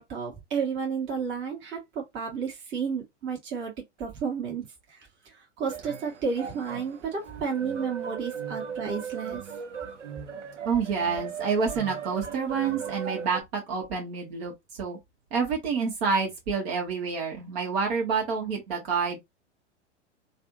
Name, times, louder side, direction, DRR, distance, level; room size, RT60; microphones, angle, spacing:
voice 1, 0.0-3.7 4.0-4.7 5.6-9.4, right 6 dB, 30° right, 1.8 m, -31 dB
sound 1, 5.7-13.4, right 7 dB, 80° right, 0.8 m, -37 dB
voice 2, 10.7-14.5 14.8-15.0 15.3-19.2, right 5 dB, 55° right, 1.7 m, -28 dB
3.3 x 2.6 x 2.8 m
figure-of-eight pair, 100°, 36 cm